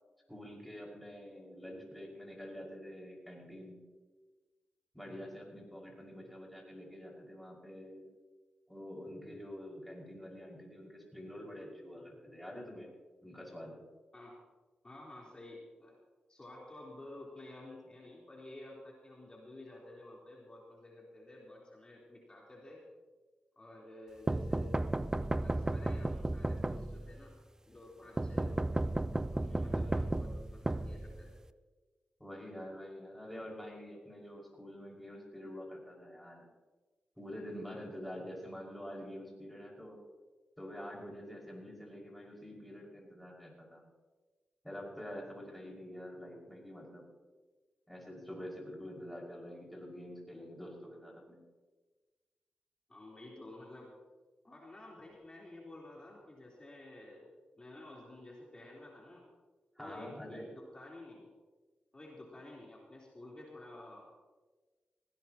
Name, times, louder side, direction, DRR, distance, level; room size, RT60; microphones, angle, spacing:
voice 1, 0.3-3.8 4.9-8.1 8.7-12.9 13.2-13.8 32.2-36.5 37.2-40.0 40.6-43.8 44.6-47.0 47.9-51.4 59.8-60.5, equal, ahead, -2 dB, 5.6 m, -47 dB
voice 2, 14.8-15.9 16.3-22.8 23.6-24.8 25.3-27.3 27.7-28.7 29.3-31.4 52.9-53.9 54.4-57.3 57.5-59.2 59.8-61.3 61.9-64.2, left 1 dB, 30° left, -4 dB, 3.9 m, -51 dB
sound 1, 24.3-27.2 28.2-31.5, right 2 dB, 20° right, 0.6 m, -34 dB
19.5 x 17.0 x 3.0 m, 1.3 s
cardioid pair, 60°, 3 cm